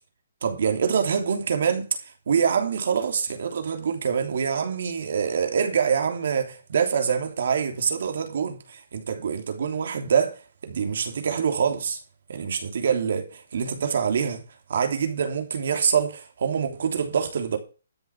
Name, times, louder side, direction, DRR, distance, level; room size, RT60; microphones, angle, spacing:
voice 1, 0.4-1.9 2.3-12.0 12.3-14.4 14.7-17.6, right 7 dB, 60° right, 3.1 m, -25 dB
12.5 x 7.2 x 5.9 m
hypercardioid pair, 170°, 0 cm